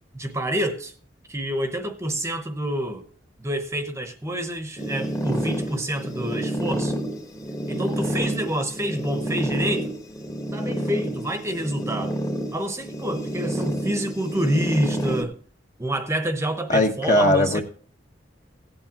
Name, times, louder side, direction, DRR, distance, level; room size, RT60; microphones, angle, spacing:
voice 1, 0.1-0.9 1.3-3.0 3.4-6.9 7.7-9.9 10.5-12.2 12.5-15.4 15.8-17.6, right 1 dB, 15° right, 0.9 m, -27 dB
sound 1, 4.8-15.2, right 1 dB, 20° left, 1.2 m, -29 dB
voice 2, 16.7-17.6, left 1 dB, 40° left, 1.2 m, -19 dB
16.5 x 8.6 x 2.9 m
head